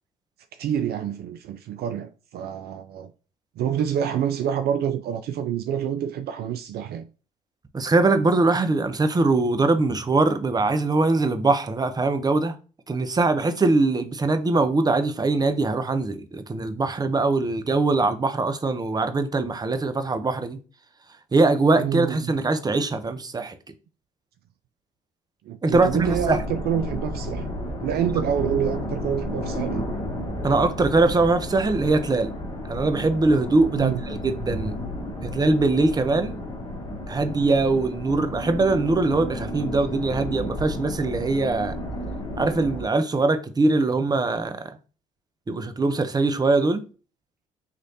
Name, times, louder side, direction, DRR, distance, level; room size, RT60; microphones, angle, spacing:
voice 1, 0.6-3.1 3.6-7.1 21.8-22.4 25.5-27.5 27.8-29.9 33.7-34.0, right 9 dB, 60° right, 0.4 m, -27 dB
voice 2, 7.7-12.5 12.9-20.6 21.3-23.6 25.6-26.4 30.4-32.3 32.7-34.8 35.2-36.4 37.1-41.7 42.4-44.6 45.5-46.8, right 3 dB, 20° right, 0.6 m, -22 dB
sound 1, 25.7-42.9, left 1 dB, 25° left, 1.3 m, -32 dB
4.1 x 3.1 x 2.7 m
hypercardioid pair, 60°, 19 cm